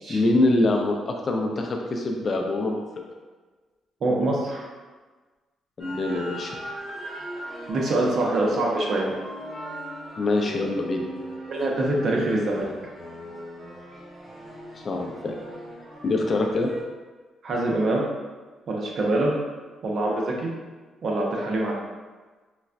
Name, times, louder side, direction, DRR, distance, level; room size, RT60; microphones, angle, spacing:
voice 1, 0.1-2.8 5.8-6.6 10.2-11.0 14.8-15.4 16.0-16.7, left 2 dB, 40° left, 2 dB, 0.4 m, -24 dB
voice 2, 4.0-4.7 7.0-7.1 7.7-9.2 11.5-12.7 17.4-18.0 18.7-19.3 19.8-20.5 21.0-21.8, right 2 dB, 55° right, -2 dB, 0.7 m, -24 dB
sound 1, 5.8-16.8, equal, 10° right, 1.0 m, -39 dB
4.0 x 2.2 x 2.4 m, 1.3 s
cardioid pair, 90°, 0 cm